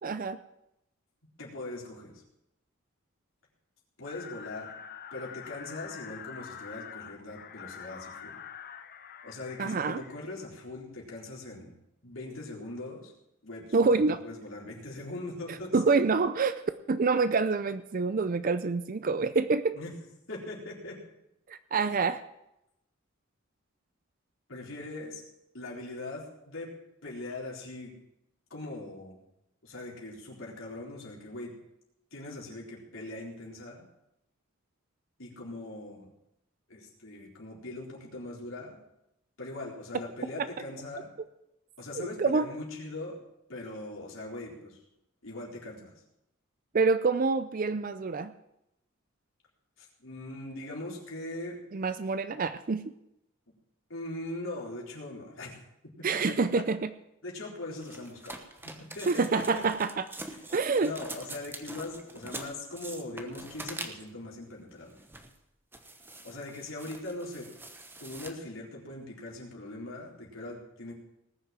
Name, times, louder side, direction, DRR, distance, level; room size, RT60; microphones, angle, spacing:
voice 1, 0.0-0.4 9.6-10.0 13.7-14.2 15.5-16.6 16.9-19.8 21.5-22.2 41.9-42.5 46.7-48.3 51.7-52.9 56.0-56.9 59.1-60.1 60.5-60.9, right 4 dB, 40° right, 12 dB, 0.5 m, -27 dB
voice 2, 1.4-2.1 4.0-4.8 5.1-8.4 9.2-11.7 12.0-13.1 13.4-15.8 19.7-19.9 20.3-21.0 24.5-25.2 25.5-26.7 27.0-27.9 28.5-29.2 29.6-31.5 32.1-33.8 35.2-36.1 36.7-38.8 39.4-41.1 41.8-43.2 43.5-44.8 45.2-45.9 49.8-51.6 53.9-55.6 56.1-56.5 57.2-58.6 58.9-59.6 60.3-60.4 60.8-64.9 66.2-67.5 68.0-70.9, left 2 dB, 70° left, -3 dB, 4.0 m, -41 dB
sound 1, 4.0-10.3, left 8 dB, 45° left, 0.8 m, -45 dB
sound 2, 57.8-64.2 64.8-65.4 65.7-68.3, right 2 dB, 10° right, 1.1 m, -44 dB
19.0 x 6.5 x 7.5 m, 0.85 s
head